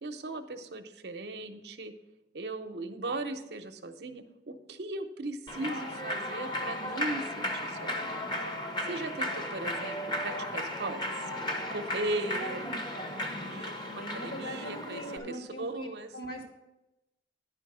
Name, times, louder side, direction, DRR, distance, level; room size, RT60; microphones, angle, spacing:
voice 1, 0.0-1.9 2.3-8.2 8.8-11.0 11.7-12.6 13.4-16.1, right 2 dB, 65° right, 7 dB, 0.7 m, -38 dB
Human voice / Clapping / Cheering, 5.5-15.2, left 1 dB, 25° left, 1.0 m, -35 dB
voice 2, 14.0-16.5, right 1 dB, 55° left, 1 dB, 2.3 m, -41 dB
10.0 x 5.1 x 6.0 m, 0.95 s
head